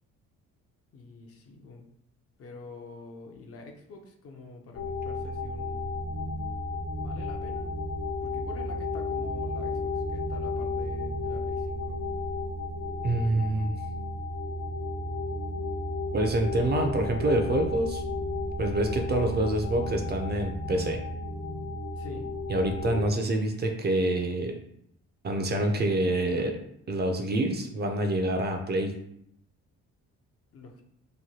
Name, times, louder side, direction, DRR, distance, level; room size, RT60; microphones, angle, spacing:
voice 1, 0.9-1.9 2.4-6.0 7.0-7.7 8.2-12.0 22.0-22.3 30.5-30.8, left 3 dB, 50° left, 3 dB, 0.6 m, -46 dB
sound 1, 4.7-23.1, left 2 dB, 75° left, 1.0 m, -33 dB
voice 2, 13.0-13.7 16.1-18.0 18.6-21.0 22.5-24.6 25.2-26.6 26.9-29.0, right 1 dB, 35° right, 4 dB, 0.5 m, -27 dB
3.0 x 2.2 x 2.8 m, 0.72 s
cardioid pair, 90°, 30 cm